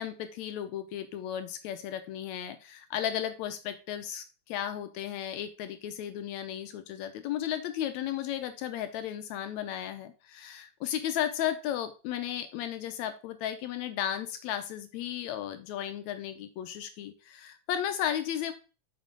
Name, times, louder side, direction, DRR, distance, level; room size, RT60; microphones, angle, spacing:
voice 1, 0.0-18.5, left 10 dB, 80° left, 9 dB, 1.8 m, -34 dB
7.2 x 5.2 x 3.7 m, 0.34 s
omnidirectional pair, 3.6 m